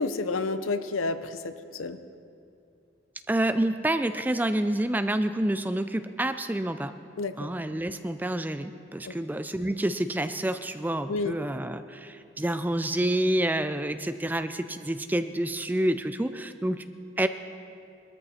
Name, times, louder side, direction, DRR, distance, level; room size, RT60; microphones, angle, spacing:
voice 1, 0.0-2.0 7.2-7.5 9.0-9.2 11.1-11.3, left 3 dB, 90° left, 11 dB, 0.7 m, -30 dB
voice 2, 3.3-6.9 7.4-16.8 17.2-17.3, right 1 dB, 10° right, 10 dB, 0.3 m, -28 dB
20.0 x 13.5 x 4.3 m, 2.5 s
head